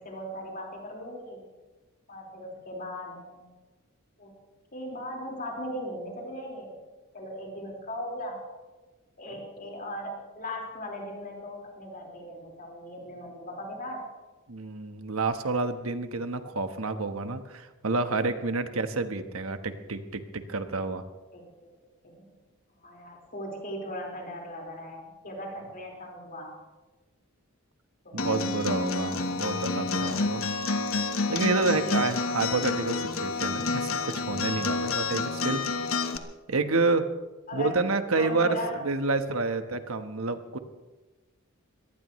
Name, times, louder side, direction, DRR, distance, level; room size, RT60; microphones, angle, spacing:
voice 1, 0.0-1.4 2.1-3.5 4.2-4.3 4.7-6.8 7.1-8.4 9.2-14.0 21.3-21.5 22.0-22.3 22.8-26.5 28.0-28.4 31.8-32.4 37.5-37.8 38.2-38.8, left 1 dB, 40° left, 0 dB, 4.6 m, -38 dB
voice 2, 14.5-21.0 28.1-30.4 31.3-35.6 36.5-37.1 37.5-40.6, right 3 dB, 75° right, 8 dB, 1.3 m, -29 dB
Acoustic guitar, 28.2-36.2, left 4 dB, 70° left, 1.3 m, -29 dB
24.0 x 18.5 x 3.2 m, 1.2 s
head